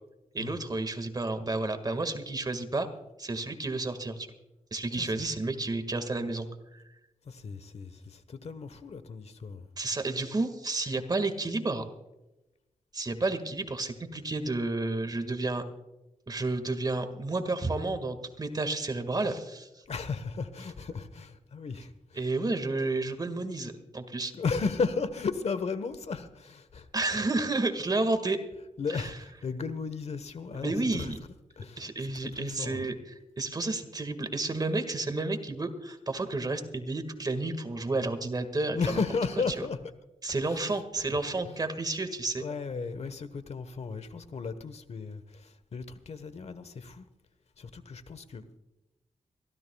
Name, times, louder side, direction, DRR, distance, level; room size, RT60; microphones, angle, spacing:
voice 1, 0.3-2.9 3.2-4.3 4.7-6.5 9.8-11.8 12.9-15.6 16.3-19.7 22.2-24.3 26.9-28.4 30.6-31.2 31.8-32.9 33.4-38.8 40.2-42.4, right 2 dB, 30° right, 1.9 m, -31 dB
voice 2, 4.9-5.4 7.2-9.7 19.9-22.3 24.3-26.9 28.0-28.3 28.8-31.3 31.6-32.8 38.7-39.8 40.4-41.1 41.4-41.6 42.4-47.1 47.6-48.4, left 4 dB, 60° left, 1.2 m, -35 dB
24.0 x 16.0 x 2.3 m
cardioid pair, 80°, 12 cm